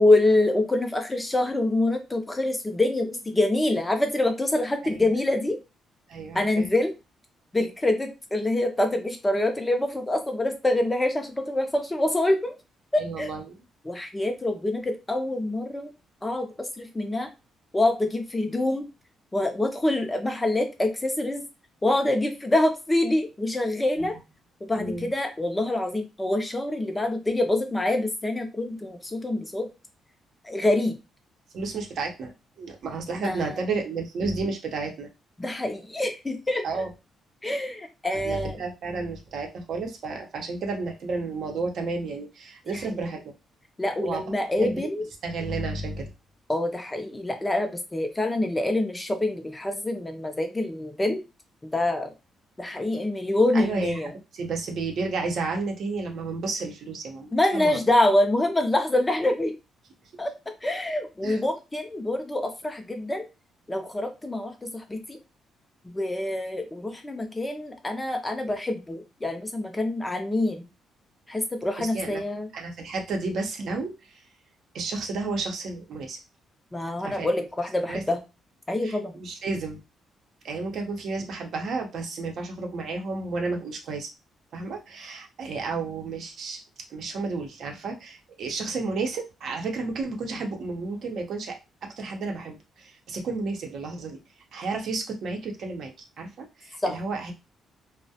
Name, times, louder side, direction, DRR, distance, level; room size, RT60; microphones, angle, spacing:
voice 1, 0.0-5.6 6.3-6.9 7.5-12.6 12.9-13.3 13.8-15.9 16.2-17.3 17.7-18.9 19.3-21.4 21.8-24.1 24.7-29.7 30.4-30.9 33.1-33.6 35.4-36.6 37.4-38.6 42.7-43.1 43.8-45.1 46.5-51.2 51.6-52.1 52.6-54.1 57.3-59.5 60.2-60.3 60.6-63.2 63.7-65.2 65.8-70.6 71.3-72.5 76.7-78.2 78.7-79.2 96.8-97.0, left 1 dB, 15° left, 6 dB, 0.5 m, -25 dB
voice 2, 6.1-6.7 13.0-13.6 24.0-24.1 24.7-25.1 31.5-35.1 36.6-36.9 38.1-43.3 44.0-44.2 44.5-44.8 45.2-46.1 53.5-54.0 54.3-57.8 61.2-61.4 71.8-72.2 72.5-73.9 74.7-76.2 77.0-77.3 77.9-78.0 78.8-79.8 80.4-84.1 84.5-86.6 86.9-91.6 91.8-94.2 94.5-95.9 96.2-97.3, right 3 dB, 65° right, 2 dB, 0.6 m, -32 dB
2.3 x 2.1 x 2.7 m, 0.27 s
cardioid pair, 90°, 0 cm